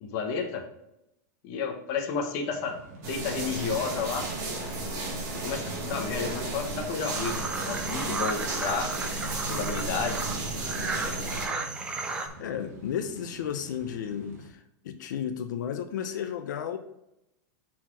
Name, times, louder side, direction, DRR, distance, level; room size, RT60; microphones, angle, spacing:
voice 1, 0.0-0.6 1.4-2.7 3.1-4.2 5.4-8.9 9.5-10.2, left 5 dB, 35° left, 3 dB, 1.0 m, -31 dB
sound 1, 2.5-14.5, right 2 dB, 55° right, 1.7 m, -45 dB
sound 2, 3.0-11.5, right 2 dB, 30° right, 1.7 m, -34 dB
sound 3, 7.0-12.3, right 3 dB, 10° right, 0.4 m, -34 dB
voice 2, 12.4-16.8, left 8 dB, 90° left, 8 dB, 0.7 m, -33 dB
5.9 x 4.3 x 4.6 m, 0.84 s
supercardioid pair, 175°, 10 cm